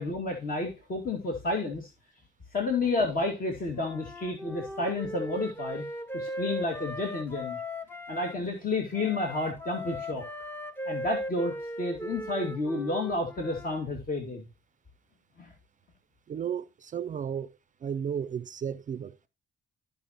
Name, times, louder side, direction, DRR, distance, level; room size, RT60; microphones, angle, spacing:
voice 1, 0.0-1.9 2.5-5.9 6.1-7.6 8.1-10.2 10.9-14.5 15.4-15.5, left 2 dB, 45° left, 2.2 m, -31 dB
Wind instrument woodwind instrument, 3.7-8.4 8.9-13.8, equal, 10° left, 0.8 m, -38 dB
voice 2, 16.3-17.5 17.8-19.3, right 8 dB, 40° right, 0.4 m, -34 dB
14.0 x 5.4 x 2.9 m
cardioid pair, 90°, 20 cm